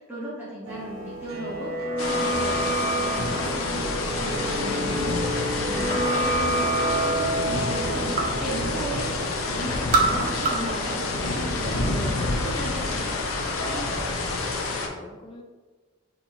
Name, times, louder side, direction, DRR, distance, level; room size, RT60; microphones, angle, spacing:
voice 1, 0.0-5.1 5.4-13.0, right 1 dB, 10° right, -11 dB, 0.9 m, -36 dB
sound 1, 0.6-12.4 12.6-12.7, right 1 dB, 85° right, 1.0 m, -30 dB
sound 2, 2.0-14.9, left 3 dB, 85° left, 0.5 m, -28 dB
sound 3, 5.9-6.4 6.8-8.4 8.8-9.4 9.7-10.8 11.1-11.9, right 3 dB, 40° right, 0.4 m, -27 dB
voice 2, 13.6-14.0 14.3-15.4, equal, 25° left, 2 dB, 0.4 m, -43 dB
4.2 x 2.9 x 2.6 m, 1.4 s
head